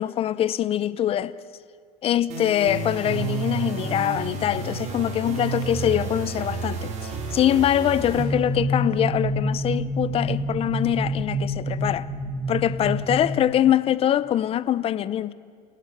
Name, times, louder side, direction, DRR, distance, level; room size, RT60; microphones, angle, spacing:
voice 1, 0.0-1.3 2.0-12.1 12.5-15.3, left 11 dB, 30° left, 0.8 m, -23 dB
sound 1, 2.3-8.2, right 4 dB, 35° right, 5.3 m, -30 dB
sound 2, 8.1-13.3, equal, 10° right, 2.2 m, -27 dB
29.0 x 18.0 x 9.0 m
supercardioid pair, 135°, 19 cm